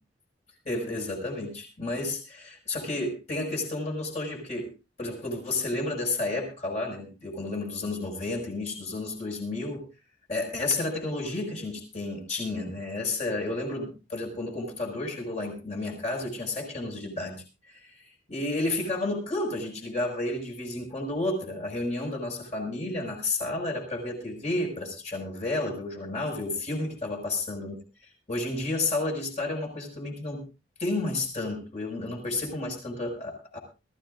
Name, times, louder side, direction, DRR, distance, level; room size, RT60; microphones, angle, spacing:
voice 1, 0.6-4.7 5.0-9.8 10.3-17.9 18.3-27.8 28.3-30.5 30.8-33.6, left 2 dB, 40° left, 0 dB, 6.0 m, -31 dB
22.5 x 14.5 x 2.6 m, 0.29 s
head